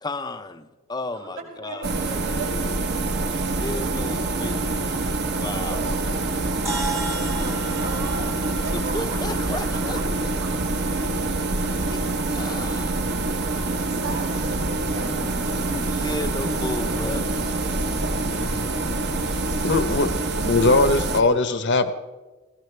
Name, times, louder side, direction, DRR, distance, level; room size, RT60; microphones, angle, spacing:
voice 1, 0.0-1.9 3.6-4.9 5.3-6.0 8.7-10.0 11.6-12.0 12.3-13.0 15.2-17.3, left 2 dB, 20° left, 10 dB, 0.6 m, -34 dB
voice 2, 1.6-2.5 5.5-10.0 10.4-11.3 13.7-15.8 16.6-18.8 20.1-20.2, right 3 dB, 85° right, -5 dB, 5.9 m, -39 dB
sound 1, 1.8-21.2, right 2 dB, 50° right, 1.0 m, -26 dB
sound 2, 6.7-11.3, right 2 dB, 15° right, 1.1 m, -36 dB
voice 3, 19.6-20.1 20.4-21.9, left 3 dB, 50° left, 10 dB, 1.0 m, -20 dB
19.5 x 16.5 x 3.3 m, 1.2 s
head